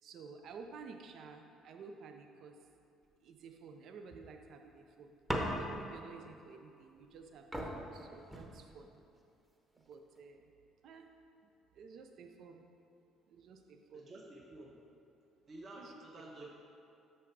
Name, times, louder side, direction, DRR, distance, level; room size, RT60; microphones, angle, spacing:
voice 1, 0.0-2.7 3.2-5.1 5.6-9.0 9.9-10.5 10.8-11.1 11.7-12.7 13.3-14.1 15.7-16.0 16.4-16.5, right 5 dB, 65° right, 5 dB, 0.5 m, -52 dB
sound 1, 5.3-6.0 7.1-7.2 7.5-9.0 9.8-10.2, equal, 10° right, 0.9 m, -39 dB
voice 2, 13.9-14.7 15.5-16.5, right 1 dB, 40° right, -2 dB, 1.0 m, -51 dB
6.0 x 5.8 x 4.6 m, 2.5 s
cardioid pair, 95°, 0 cm